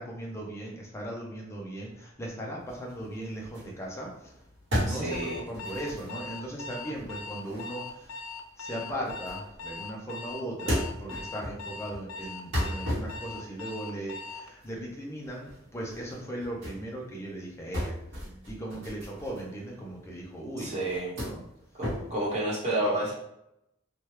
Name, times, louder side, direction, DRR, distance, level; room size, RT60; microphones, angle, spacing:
voice 1, 0.0-4.3 4.7-8.2 8.6-20.8 21.2-21.4, right 1 dB, 15° left, -2 dB, 0.6 m, -38 dB
sound 1, 2.6-9.9 10.3-16.9 17.1-20.2 20.6-22.5, equal, 60° right, 1.1 m, -36 dB
voice 2, 4.9-5.4 20.6-21.1 21.8-23.1, right 1 dB, 35° right, -7 dB, 1.1 m, -30 dB
Alarm, 5.1-14.5, left 4 dB, 80° left, 0.4 m, -41 dB
2.9 x 2.3 x 3.2 m, 0.80 s
head